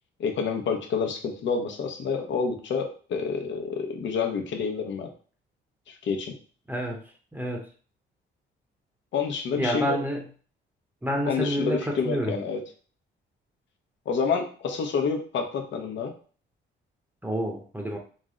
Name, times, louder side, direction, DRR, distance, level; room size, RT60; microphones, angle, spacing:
voice 1, 0.2-5.1 6.0-6.3 9.1-10.0 11.2-12.6 14.1-16.1, left 5 dB, 70° left, 3 dB, 0.9 m, -28 dB
voice 2, 6.7-7.0 7.3-7.6 9.5-10.2 11.0-12.3 17.2-18.0, equal, 10° right, 1 dB, 0.8 m, -28 dB
5.1 x 2.1 x 3.7 m, 0.40 s
cardioid pair, 90°, 20 cm